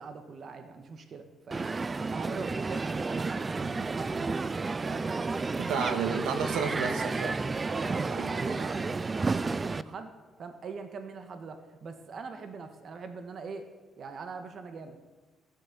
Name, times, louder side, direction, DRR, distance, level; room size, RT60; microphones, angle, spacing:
voice 1, 0.0-1.7 2.1-4.5 4.8-5.1 7.7-10.1 10.4-13.7 14.0-15.0, right 4 dB, 50° right, 7 dB, 1.7 m, -42 dB
Crowd, 1.5-9.8, right 3 dB, 25° right, 0.5 m, -31 dB
voice 2, 5.6-7.4 8.2-8.6, right 6 dB, 90° right, 7 dB, 1.9 m, -32 dB
15.5 x 12.0 x 7.1 m, 1.2 s
cardioid pair, 120°, 0 cm